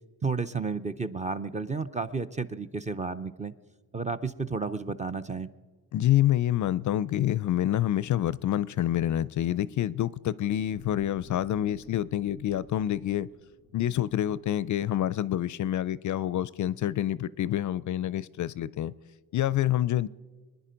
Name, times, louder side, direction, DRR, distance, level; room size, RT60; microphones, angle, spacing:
voice 1, 0.2-3.5 3.9-5.5, right 4 dB, 20° right, 0.5 m, -32 dB
voice 2, 5.9-13.3 13.7-18.9 19.3-20.1, left 12 dB, 50° left, 0.4 m, -27 dB
sound 1, 10.5-15.1 15.5-15.7, equal, 90° right, 4.4 m, -54 dB
23.5 x 10.5 x 5.1 m
cardioid pair, 100°, 40 cm